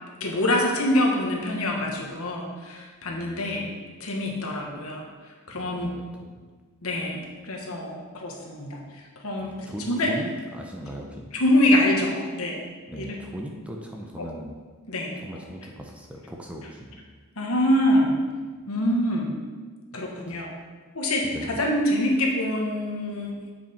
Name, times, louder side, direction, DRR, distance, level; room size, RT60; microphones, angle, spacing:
voice 1, 0.2-3.6 4.0-5.0 5.5-6.0 6.8-10.1 11.3-12.6 12.9-13.2 14.2-14.3 14.9-15.1 17.4-18.1 18.7-19.3 19.9-20.5 20.9-23.3, left 1 dB, 80° left, 0 dB, 1.4 m, -25 dB
voice 2, 3.0-3.8 5.6-6.4 9.4-11.3 12.9-14.5 15.2-17.0 20.3-20.5 21.3-21.5, equal, 5° right, 0 dB, 0.7 m, -39 dB
7.4 x 5.9 x 4.4 m, 1.4 s
head